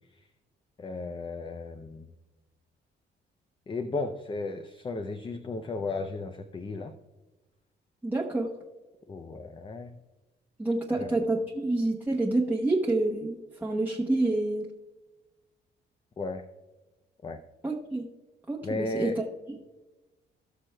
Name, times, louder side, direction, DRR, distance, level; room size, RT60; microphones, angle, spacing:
voice 1, 0.8-2.1 3.7-6.9 9.1-9.9 10.9-11.1 16.2-16.4 17.2-17.4 18.6-19.2, left 3 dB, 25° left, 7 dB, 0.5 m, -34 dB
voice 2, 8.0-8.5 10.6-14.7 17.6-18.0 18.5-19.1, right 2 dB, 10° right, -2 dB, 0.9 m, -28 dB
17.5 x 6.1 x 2.2 m, 1.1 s
cardioid pair, 90°, 20 cm